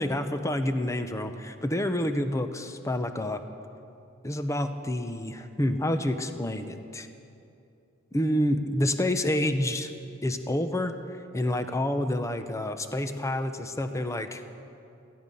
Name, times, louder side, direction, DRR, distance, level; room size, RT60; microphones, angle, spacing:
voice 1, 0.0-3.4 4.2-7.1 8.1-9.9 10.2-10.9 11.3-14.4, left 1 dB, 15° left, 8 dB, 0.8 m, -28 dB
17.5 x 14.0 x 5.5 m, 2.6 s
head